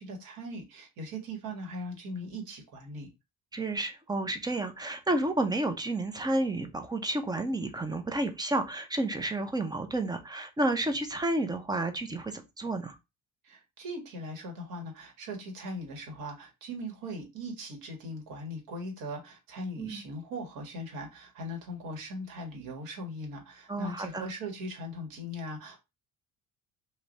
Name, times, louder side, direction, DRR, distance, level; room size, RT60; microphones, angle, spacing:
voice 1, 0.0-3.1 13.4-25.8, equal, 80° right, 1.7 m, -39 dB
voice 2, 3.5-13.0 19.8-20.0 23.7-24.3, right 2 dB, 10° right, 0.5 m, -31 dB
3.3 x 2.7 x 3.9 m
cardioid pair, 140°, 34 cm